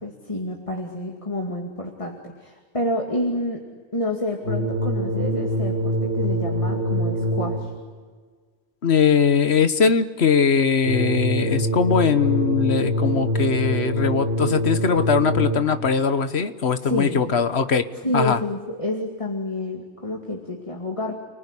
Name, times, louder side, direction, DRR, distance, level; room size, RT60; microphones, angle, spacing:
voice 1, 0.0-3.6 3.9-7.7 16.8-17.3 18.0-21.1, left 1 dB, 30° left, 1 dB, 2.6 m, -29 dB
sound 1, 4.4-7.9 10.8-15.9, equal, 60° right, 4.2 m, -24 dB
voice 2, 8.8-17.8 18.1-18.4, left 6 dB, 65° left, 11 dB, 1.5 m, -20 dB
30.0 x 20.0 x 10.0 m, 1.5 s
omnidirectional pair, 1.2 m